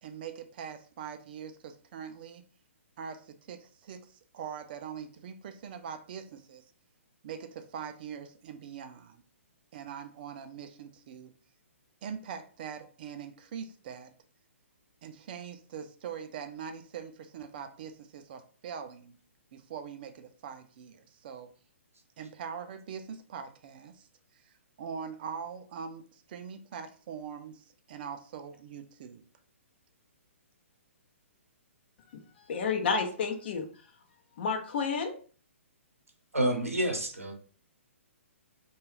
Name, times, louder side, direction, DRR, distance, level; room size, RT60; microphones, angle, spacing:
voice 1, 0.0-2.4 3.0-6.6 7.2-9.2 9.7-11.3 12.0-14.1 15.0-19.1 19.5-21.5 22.2-24.1 24.3-29.2, right 7 dB, 45° right, 0.4 m, -42 dB
voice 2, 32.1-33.7 34.4-35.2, left 5 dB, 50° left, 0.6 m, -31 dB
voice 3, 36.3-37.3, right 1 dB, 85° right, 0.7 m, -28 dB
2.3 x 2.3 x 3.2 m
figure-of-eight pair, 125°, 7 cm